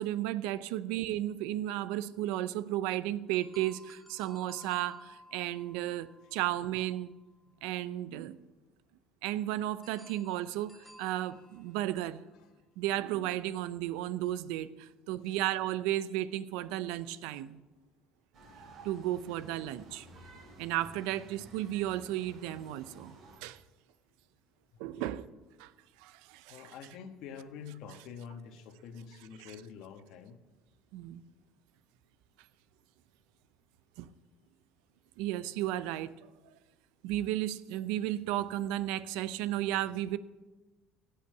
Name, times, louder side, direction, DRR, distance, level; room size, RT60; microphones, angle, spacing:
voice 1, 0.0-7.1 7.6-8.4 9.2-12.2 12.8-17.6 18.8-20.1 20.6-23.6 24.8-25.3 25.6-25.7 26.0-26.8 29.4-29.5 30.9-31.3 34.0-34.1 35.2-36.2 37.0-40.2, right 14 dB, 85° right, 15 dB, 0.6 m, -34 dB
sound 1, 3.3-7.4 9.8-12.2, left 2 dB, 5° left, 1.3 m, -56 dB
sound 2, 18.3-23.4, right 2 dB, 50° right, 3.8 m, -53 dB
voice 2, 24.7-25.1 26.5-30.4, left 7 dB, 70° left, 7 dB, 1.3 m, -47 dB
17.0 x 5.7 x 9.3 m, 1.2 s
cardioid pair, 120°, 0 cm